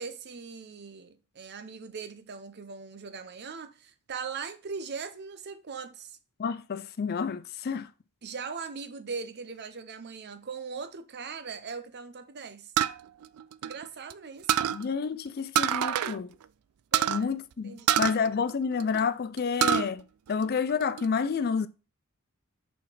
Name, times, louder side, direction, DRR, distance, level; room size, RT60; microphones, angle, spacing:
voice 1, 0.0-6.2 8.2-12.7 13.6-14.7 16.9-17.4 17.6-18.2, right 5 dB, 50° right, 0.7 m, -40 dB
voice 2, 6.4-7.9 14.7-16.3 17.1-21.7, left 6 dB, 45° left, 0.4 m, -29 dB
sound 1, 12.8-14.1 14.5-14.8 15.5-16.2 16.4-16.5 16.9-17.2 17.9-19.0 19.4-19.9 20.3-21.0, right 10 dB, 85° right, 0.4 m, -26 dB
5.6 x 4.3 x 5.0 m
head